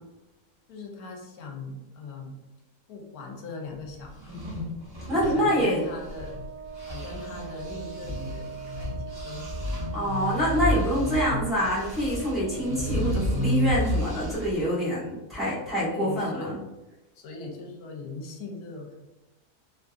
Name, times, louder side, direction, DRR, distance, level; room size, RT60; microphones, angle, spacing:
voice 1, 0.7-2.4 2.9-4.5 5.0-6.3 6.9-9.6 15.8-16.5 17.1-19.0, left 3 dB, 75° left, 1 dB, 1.1 m, -40 dB
sound 1, 4.1-6.4 6.7-14.6, equal, 30° right, 0.4 m, -31 dB
voice 2, 5.1-5.8 9.9-16.6, equal, ahead, -9 dB, 0.8 m, -26 dB
Wind instrument woodwind instrument, 5.5-13.3, right 7 dB, 70° right, 0.9 m, -42 dB
2.7 x 2.6 x 2.3 m, 1.1 s
omnidirectional pair, 1.6 m